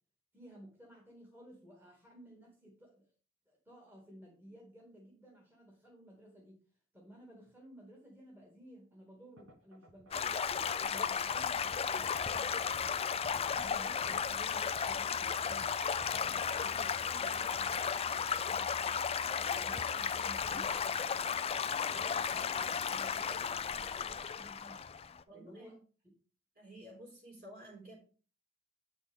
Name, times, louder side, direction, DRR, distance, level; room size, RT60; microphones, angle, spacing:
voice 1, 0.3-3.1 3.5-6.6 6.9-10.3 10.8-12.6 13.2-15.7 16.1-19.0 19.4-21.1 21.7-24.8 25.3-25.8, equal, 10° right, -3 dB, 2.3 m, -55 dB
sound 1, 9.4-18.3, equal, 80° right, 1.5 m, -58 dB
Stream / Gurgling / Trickle dribble, 10.1-25.2, left 7 dB, 30° left, 0.4 m, -34 dB
voice 2, 25.3-25.8 26.6-28.0, right 1 dB, 50° right, -1 dB, 4.0 m, -52 dB
8.5 x 6.2 x 3.7 m, 0.38 s
head